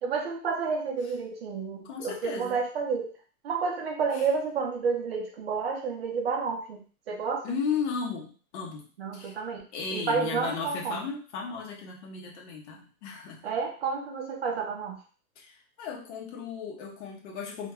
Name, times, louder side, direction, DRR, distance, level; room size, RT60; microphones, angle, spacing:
voice 1, 0.0-3.1 3.4-7.5 9.0-9.6 9.9-11.1 13.4-15.0, right 5 dB, 45° right, 2 dB, 0.5 m, -30 dB
voice 2, 1.8-2.6 4.2-4.3 7.4-8.9 9.1-9.4 9.7-13.4 15.4-17.7, left 5 dB, 50° left, -1 dB, 0.7 m, -35 dB
2.3 x 2.1 x 3.4 m, 0.38 s
supercardioid pair, 180°, 44 cm